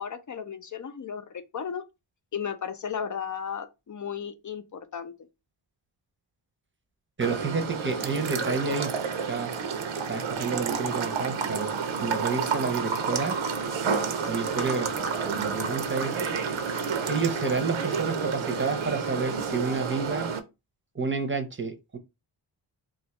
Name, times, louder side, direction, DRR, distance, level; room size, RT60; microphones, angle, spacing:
voice 1, 0.0-1.8 2.3-5.3, left 7 dB, 40° left, 0.5 m, -35 dB
voice 2, 7.2-8.9 9.3-9.5 10.1-11.7 12.0-13.4 14.2-14.9 15.2-16.2 17.1-20.3 20.9-22.0, right 4 dB, 25° right, 0.7 m, -30 dB
sound 1, 7.2-20.4, right 5 dB, 70° right, 0.7 m, -30 dB
2.5 x 2.4 x 4.1 m
cardioid pair, 70°, 49 cm